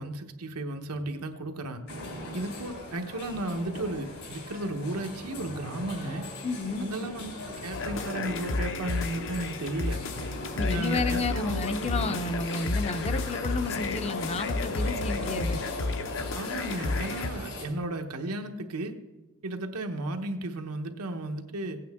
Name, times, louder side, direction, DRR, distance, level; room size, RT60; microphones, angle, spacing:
voice 1, 0.0-1.8 2.3-6.3 6.8-10.0 10.6-11.6 16.3-18.9 19.4-21.8, right 1 dB, 90° right, 6 dB, 1.0 m, -34 dB
sound 1, 1.9-17.6, left 1 dB, 75° left, 3.2 m, -41 dB
voice 2, 6.4-6.8 10.5-15.6, left 3 dB, 30° left, 9 dB, 0.5 m, -31 dB
sound 2, 7.7-17.3, left 3 dB, 60° left, 0.8 m, -32 dB
16.5 x 8.6 x 3.5 m, 1.1 s
head